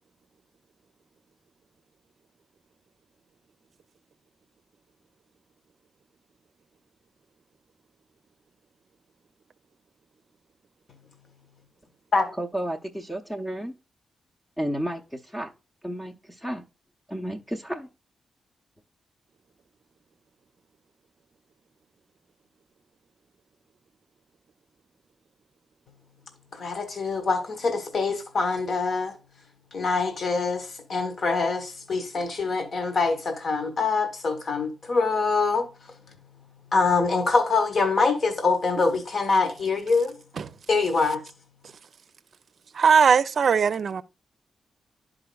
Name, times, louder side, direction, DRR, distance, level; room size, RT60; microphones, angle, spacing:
voice 1, 12.4-13.8 14.6-15.5 15.8-16.7 17.1-17.9, right 1 dB, 10° left, 0.7 m, -32 dB
voice 2, 26.5-29.2 29.7-35.7 36.7-40.2 40.7-41.2, left 4 dB, 55° left, 1.5 m, -24 dB
voice 3, 42.7-44.0, right 6 dB, 60° right, 0.5 m, -19 dB
11.5 x 4.9 x 2.3 m
cardioid pair, 95°, 0 cm